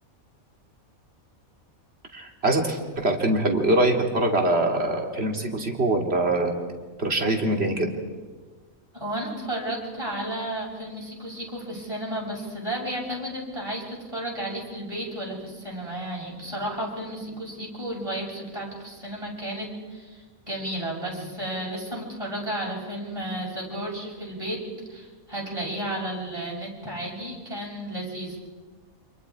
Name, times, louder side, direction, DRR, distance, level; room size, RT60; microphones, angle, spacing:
voice 1, 2.1-6.6 7.0-7.9, right 1 dB, 45° right, 2 dB, 3.1 m, -23 dB
voice 2, 8.9-24.6 24.9-28.4, right 1 dB, 20° right, -3 dB, 7.1 m, -33 dB
30.0 x 27.0 x 4.8 m, 1.4 s
omnidirectional pair, 1.4 m